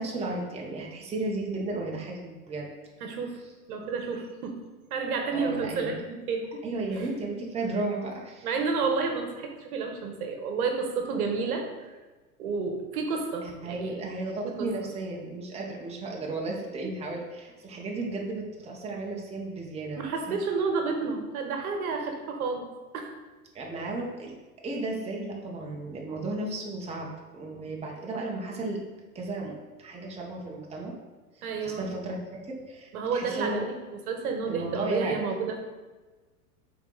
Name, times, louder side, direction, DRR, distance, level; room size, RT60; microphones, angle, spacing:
voice 1, 0.0-2.7 5.3-6.0 6.6-8.5 13.4-20.4 23.5-24.3 24.6-28.8 29.1-30.9 31.3-33.7 34.5-35.2, right 2 dB, 15° right, -1 dB, 1.0 m, -34 dB
voice 2, 3.0-3.4 3.7-4.6 4.9-6.0 6.3-6.6 6.9-7.1 8.4-11.9 12.4-14.1 14.6-14.7 20.0-22.6 22.9-23.1 24.7-24.8 31.4-31.9 32.9-33.8 34.1-35.6, right 4 dB, 65° right, 4 dB, 1.2 m, -30 dB
6.1 x 4.0 x 3.9 m, 1.2 s
hypercardioid pair, 105°, 47 cm